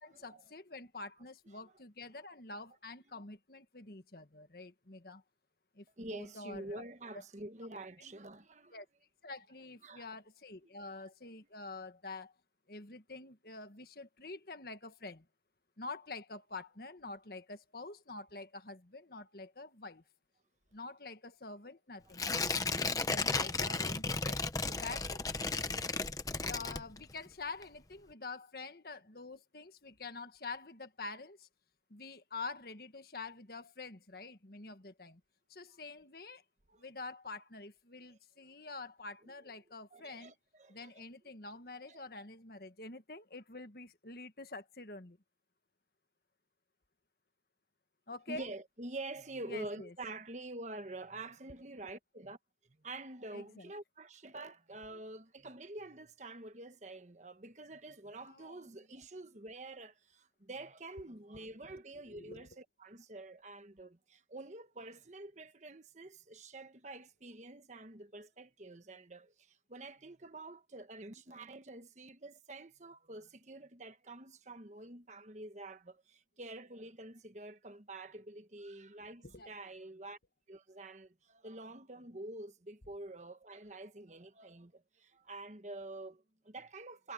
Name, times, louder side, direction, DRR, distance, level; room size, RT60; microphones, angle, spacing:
voice 1, 0.0-5.2 5.7-6.8 7.1-7.2 8.7-8.8 9.2-12.3 12.7-15.2 15.8-20.0 20.7-25.2 26.3-31.5 31.9-35.2 35.5-36.4 36.8-40.3 40.7-45.2 48.1-48.5 49.5-49.9 53.3-53.7 58.2-58.7 62.1-62.5 79.2-79.5, left 3 dB, 55° left, 1.6 m, -47 dB
voice 2, 6.0-8.8 9.8-10.1 22.3-22.5 36.7-36.8 39.9-40.9 41.9-42.0 48.3-52.4 52.8-80.2 80.5-87.1, right 2 dB, 40° right, 1.3 m, -47 dB
Tearing, 22.1-27.3 27.6-27.7, left 3 dB, 20° left, 1.1 m, -34 dB
head